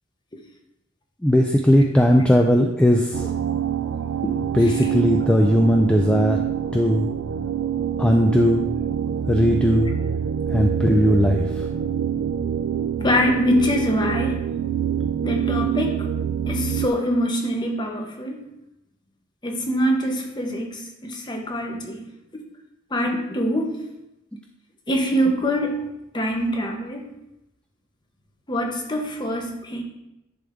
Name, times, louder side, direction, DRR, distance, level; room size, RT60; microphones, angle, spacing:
voice 1, 1.2-3.3 4.5-6.4 6.7-7.1 8.0-8.7 9.3-9.9 10.5-11.4, equal, 5° left, 2 dB, 0.3 m, -18 dB
sound 1, 3.1-16.9, right 8 dB, 70° right, 0.3 m, -26 dB
voice 2, 13.0-14.4 15.2-16.0 16.5-18.4 19.4-22.0 22.9-23.8 24.9-25.9 26.1-27.1 28.5-29.8, equal, 25° left, 2 dB, 1.0 m, -24 dB
10.5 x 3.5 x 3.6 m, 0.88 s
head